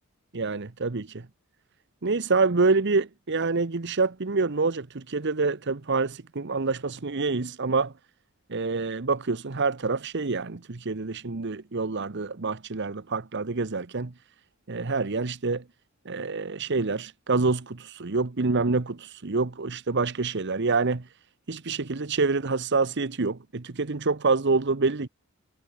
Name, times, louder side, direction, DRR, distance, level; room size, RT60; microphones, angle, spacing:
voice 1, 0.3-1.3 2.0-7.9 8.5-14.1 14.7-15.6 16.0-21.1 21.5-25.1, right 4 dB, 60° right, 1.0 m, -27 dB
head